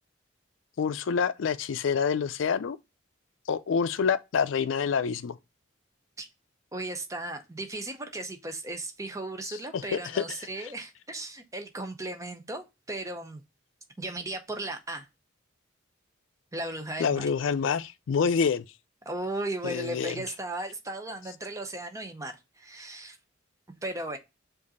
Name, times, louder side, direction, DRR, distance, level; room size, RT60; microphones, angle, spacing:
voice 1, 0.8-2.8 3.5-5.4 9.5-10.2 17.0-18.6 19.6-20.2, left 6 dB, 75° left, 0.4 m, -27 dB
voice 2, 6.7-13.4 14.0-15.1 16.5-17.3 19.1-23.2 23.8-24.2, right 2 dB, 15° right, 0.6 m, -36 dB
5.1 x 2.6 x 4.0 m
head